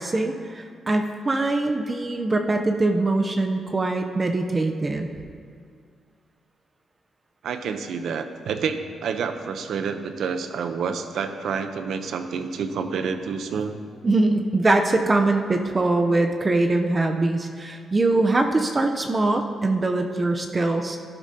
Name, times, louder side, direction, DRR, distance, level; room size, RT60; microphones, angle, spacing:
voice 1, 0.0-5.1 14.0-21.0, right 2 dB, 30° right, 4 dB, 0.7 m, -22 dB
voice 2, 7.4-13.8, right 6 dB, 75° right, 8 dB, 0.7 m, -28 dB
13.5 x 11.5 x 2.8 m, 2.2 s
cardioid pair, 90°, 0 cm